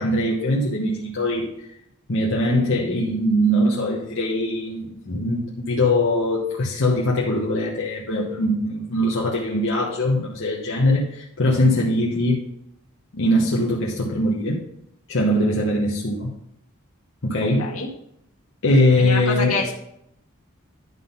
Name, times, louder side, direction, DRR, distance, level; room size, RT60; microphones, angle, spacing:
voice 1, 0.0-1.7 2.1-12.4 13.1-14.6 15.1-16.3 17.2-17.8 18.6-19.5, left 1 dB, 60° left, -3 dB, 1.1 m, -21 dB
voice 2, 19.0-19.8, left 3 dB, 75° left, -1 dB, 1.8 m, -26 dB
11.0 x 3.8 x 5.5 m, 0.76 s
head